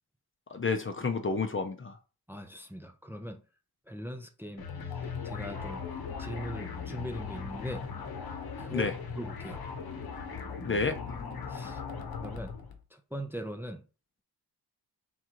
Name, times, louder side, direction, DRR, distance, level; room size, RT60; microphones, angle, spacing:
voice 1, 0.5-2.0 8.7-9.0 10.6-11.0, left 4 dB, 30° left, 0.7 m, -30 dB
voice 2, 2.3-3.4 3.9-4.7 5.2-5.8 6.2-7.8 8.6-8.9 9.2-9.6 11.5-11.8 12.2-12.5 13.1-13.8, equal, 5° right, 0.6 m, -40 dB
sound 1, 4.6-12.8, left 5 dB, 60° left, 1.0 m, -39 dB
3.8 x 2.9 x 4.6 m
cardioid pair, 70°, 40 cm